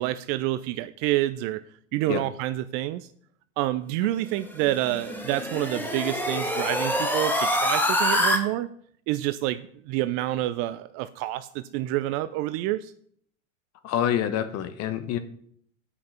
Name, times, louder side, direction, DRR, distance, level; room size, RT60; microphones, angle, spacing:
voice 1, 0.0-1.6 1.9-3.1 3.6-8.7 9.1-12.9, right 15 dB, 35° right, 13 dB, 0.4 m, -28 dB
sound 1, 4.4-8.4, left 1 dB, 5° left, 1.3 m, -26 dB
voice 2, 13.8-15.2, left 10 dB, 40° left, 11 dB, 1.1 m, -27 dB
8.0 x 5.9 x 5.7 m, 0.63 s
hypercardioid pair, 90°, 41 cm